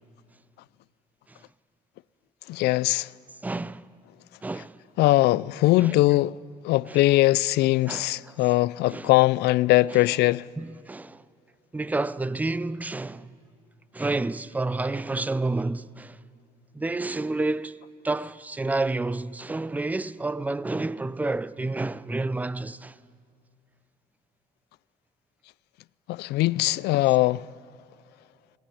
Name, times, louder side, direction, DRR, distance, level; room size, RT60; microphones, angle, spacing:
voice 1, 2.5-3.1 5.0-6.4 6.6-10.5 26.1-27.5, left 18 dB, 75° left, 0.4 m, -21 dB
voice 2, 3.4-3.9 4.4-4.8 5.8-6.0 6.9-7.0 7.9-8.4 8.9-9.1 10.6-11.2 11.7-13.3 13.9-16.2 16.7-23.0, right 2 dB, 10° right, 0.4 m, -30 dB
19.5 x 14.5 x 9.9 m
cardioid pair, 110°, 17 cm